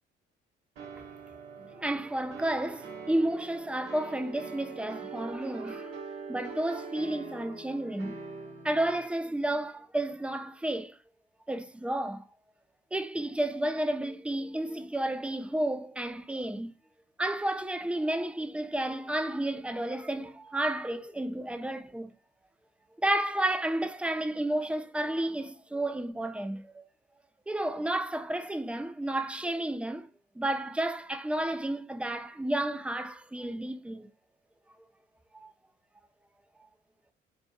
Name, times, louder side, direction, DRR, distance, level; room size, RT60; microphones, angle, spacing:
sound 1, 0.8-9.0, right 4 dB, 75° right, 1.1 m, -43 dB
voice 1, 1.6-6.0 6.3-8.2 8.6-11.0 11.5-12.3 12.9-16.7 17.2-22.1 23.0-26.8 27.5-30.1 30.4-34.1 35.3-35.5, right 1 dB, 5° right, 0.6 m, -31 dB
4.2 x 3.1 x 2.2 m
figure-of-eight pair, 45°, 29 cm